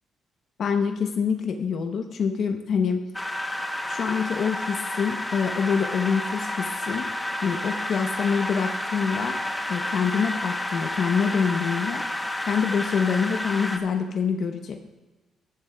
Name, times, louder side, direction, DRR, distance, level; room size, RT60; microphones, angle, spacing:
voice 1, 0.6-3.0 3.9-7.1 7.4-9.4 9.7-12.0 12.5-14.8, left 6 dB, 60° left, 5 dB, 0.8 m, -26 dB
sound 1, 3.1-13.8, left 1 dB, 10° left, 0.9 m, -30 dB
14.0 x 10.5 x 2.3 m, 1.2 s
cardioid pair, 90°, 0 cm